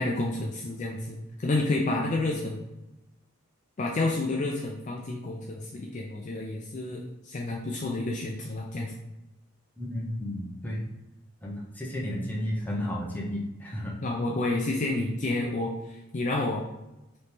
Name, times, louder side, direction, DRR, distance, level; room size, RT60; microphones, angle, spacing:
voice 1, 0.0-2.6 3.8-8.9 12.0-12.2 14.0-16.6, left 2 dB, 35° left, -1 dB, 0.4 m, -30 dB
voice 2, 9.8-10.8 11.4-14.0, left 1 dB, 10° left, -4 dB, 0.8 m, -33 dB
4.2 x 3.1 x 3.4 m, 0.95 s
head